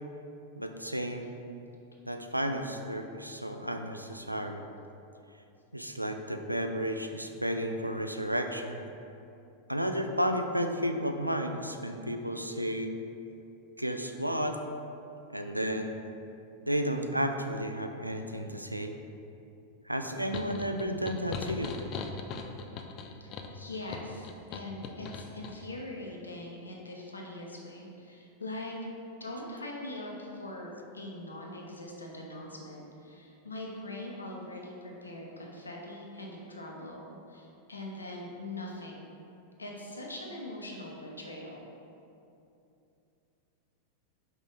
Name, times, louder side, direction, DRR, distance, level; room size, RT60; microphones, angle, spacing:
voice 1, 0.6-1.3 2.1-4.6 5.7-8.8 9.7-12.9 13.8-14.6 15.3-16.0 16.7-18.9 19.9-21.8, equal, 90° right, 6 dB, 0.4 m, -32 dB
sound 1, 20.3-25.6, left 5 dB, 35° left, 0.4 m, -40 dB
voice 2, 23.5-28.7 29.2-39.1 39.6-41.7, left 1 dB, 80° left, -1 dB, 0.9 m, -42 dB
5.5 x 5.0 x 3.9 m, 2.7 s
figure-of-eight pair, 90°, 0 cm